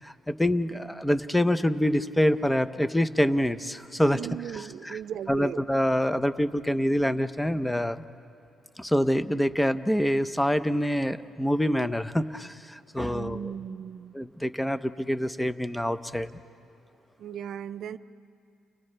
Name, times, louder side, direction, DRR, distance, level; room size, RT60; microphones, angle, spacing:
voice 1, 0.0-4.2 4.5-5.0 5.3-8.0 8.8-13.5 14.1-16.4, equal, 5° left, 13 dB, 0.7 m, -26 dB
voice 2, 4.1-5.6 13.1-14.1 17.2-18.0, right 9 dB, 70° right, 13 dB, 0.5 m, -37 dB
30.0 x 30.0 x 3.3 m, 2.5 s
cardioid pair, 90°, 0 cm